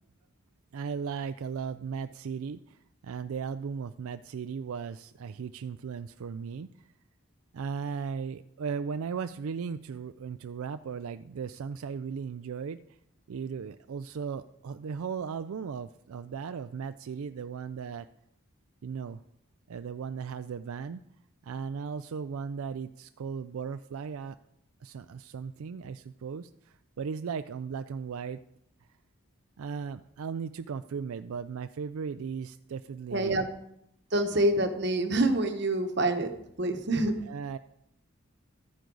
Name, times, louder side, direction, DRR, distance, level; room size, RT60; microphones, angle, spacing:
voice 1, 0.7-6.9 7.5-13.0 13.3-18.1 18.8-19.2 19.7-21.0 21.4-24.4 24.8-28.4 29.6-33.4 37.3-37.6, right 6 dB, 85° right, 11 dB, 0.4 m, -37 dB
voice 2, 33.1-33.5 34.1-37.2, right 1 dB, 50° right, 6 dB, 1.1 m, -27 dB
13.5 x 9.5 x 3.9 m, 0.78 s
head